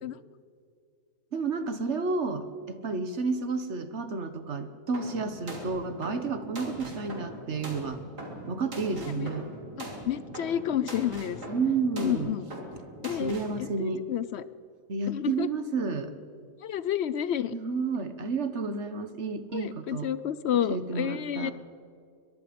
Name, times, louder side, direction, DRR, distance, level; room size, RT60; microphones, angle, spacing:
voice 1, 1.3-8.0 8.5-9.5 11.5-12.3 13.2-14.1 14.9-16.1 17.5-20.1 20.5-21.5, right 4 dB, 50° right, 9 dB, 1.4 m, -31 dB
sound 1, 4.9-13.6, right 1 dB, 85° right, 4.0 m, -41 dB
voice 2, 10.1-11.4 12.0-12.5 13.0-13.3 13.6-13.7 14.1-14.4 15.1-15.5 16.6-17.5 19.5-21.5, left 10 dB, 60° left, 16 dB, 0.7 m, -30 dB
23.0 x 22.0 x 5.2 m, 2.2 s
omnidirectional pair, 1.7 m